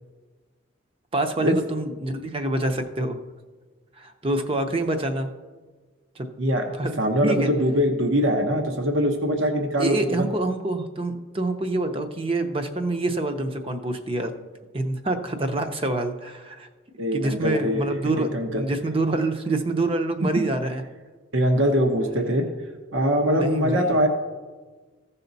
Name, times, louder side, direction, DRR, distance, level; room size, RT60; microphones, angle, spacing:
voice 1, 1.1-3.2 4.0-5.3 6.2-6.3 6.8-6.9 7.2-7.5 9.8-14.3 14.7-16.7 17.1-20.8 23.3-24.0, right 2 dB, 30° right, 7 dB, 0.7 m, -26 dB
voice 2, 7.0-10.3 17.0-17.8 18.2-18.6 21.3-22.5 22.9-24.1, equal, 70° right, 4 dB, 1.0 m, -22 dB
15.5 x 5.6 x 4.0 m, 1.4 s
head